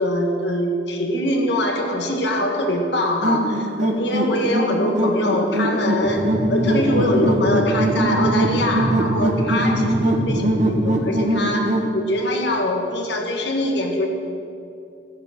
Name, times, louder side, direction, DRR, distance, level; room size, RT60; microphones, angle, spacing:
voice 1, 0.0-14.1, left 1 dB, 65° left, 1 dB, 2.0 m, -23 dB
sound 1, 3.2-11.9, right 1 dB, 40° right, 1.4 m, -22 dB
sound 2, 6.0-11.0, right 1 dB, 15° right, 2.2 m, -27 dB
16.0 x 9.8 x 6.2 m, 2.6 s
head